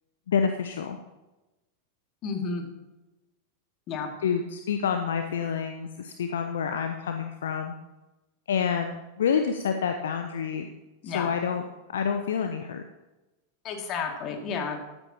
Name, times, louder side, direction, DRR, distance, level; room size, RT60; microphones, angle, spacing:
voice 1, 0.3-1.0 4.2-7.7 8.5-10.7 11.0-11.6 11.9-12.8, left 7 dB, 60° left, 6 dB, 0.8 m, -28 dB
voice 2, 2.2-2.6 3.9-4.1 11.0-11.3 13.6-14.8, left 5 dB, 35° left, 3 dB, 2.4 m, -31 dB
13.5 x 13.5 x 3.0 m, 1.0 s
figure-of-eight pair, 90°, 0 cm